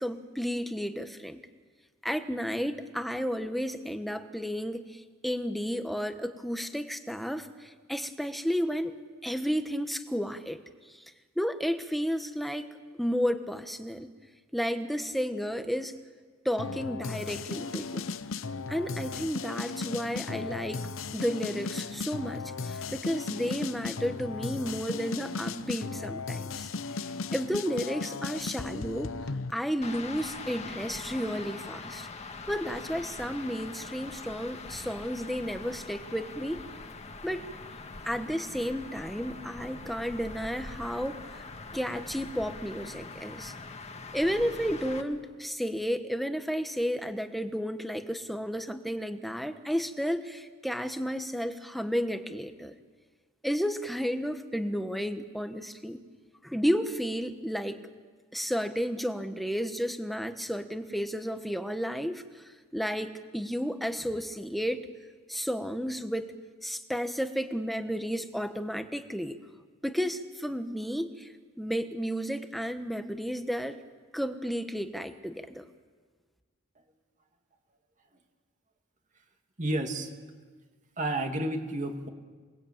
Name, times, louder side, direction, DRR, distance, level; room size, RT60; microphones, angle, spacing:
voice 1, 0.0-1.4 2.0-8.9 9.2-10.6 10.9-11.0 11.4-12.7 13.0-14.1 14.5-15.9 16.4-18.0 18.7-20.8 21.1-26.7 27.3-29.1 29.5-32.1 32.5-36.6 37.2-37.4 38.0-41.4 41.7-43.5 44.1-52.7 53.4-56.0 56.4-57.8 58.3-62.4 62.7-64.8 65.3-66.3 66.6-69.4 69.8-71.3 71.6-73.8 74.1-75.7, equal, ahead, 7 dB, 1.3 m, -32 dB
sound 1, 16.6-29.5, left 4 dB, 80° left, 0.8 m, -36 dB
sound 2, 29.8-45.0, left 3 dB, 35° left, 1.7 m, -43 dB
voice 2, 79.6-80.1 81.0-82.1, right 1 dB, 40° right, 4 dB, 2.4 m, -31 dB
27.5 x 19.5 x 8.8 m, 1.5 s
head